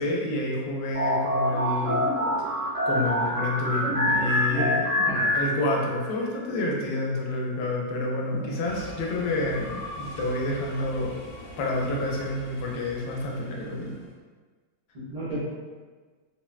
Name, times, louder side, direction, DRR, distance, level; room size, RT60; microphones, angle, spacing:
voice 1, 0.0-2.0 2.8-4.8 5.3-11.1 11.6-13.9, left 2 dB, 80° left, -1 dB, 1.2 m, -29 dB
sound 1, 0.9-6.1, left 1 dB, 10° right, 0.5 m, -26 dB
sound 2, 1.5-5.9 6.2-9.7 10.1-10.2, right 1 dB, 60° right, 1.1 m, -38 dB
sound 3, 8.6-14.1, equal, 60° left, 0.9 m, -42 dB
voice 2, 14.9-15.4, equal, 75° right, -13 dB, 0.3 m, -32 dB
3.5 x 2.1 x 2.3 m, 1.4 s
omnidirectional pair, 1.9 m